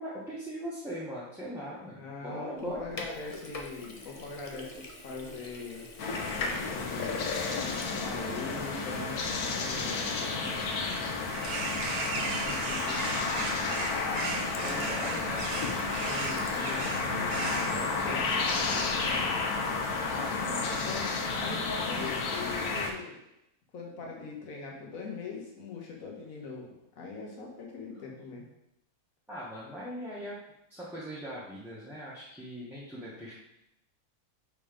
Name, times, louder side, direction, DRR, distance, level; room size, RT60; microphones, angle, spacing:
voice 1, 0.0-3.0 14.5-15.5 20.1-20.6 29.3-30.4 30.7-33.3, equal, ahead, -10 dB, 1.0 m, -40 dB
voice 2, 1.9-5.9 6.6-7.3 7.9-9.2 9.5-10.6 12.1-13.8 15.9-19.5 20.6-23.2 23.7-28.5, left 4 dB, 65° left, -1 dB, 1.6 m, -42 dB
Sink (filling or washing), 2.6-19.2, left 2 dB, 40° left, 0.5 m, -48 dB
sound 1, 6.0-22.9, left 4 dB, 85° left, 1.3 m, -31 dB
sound 2, 11.3-17.7, right 4 dB, 75° right, 1.2 m, -37 dB
5.3 x 3.9 x 5.1 m, 0.82 s
omnidirectional pair, 1.6 m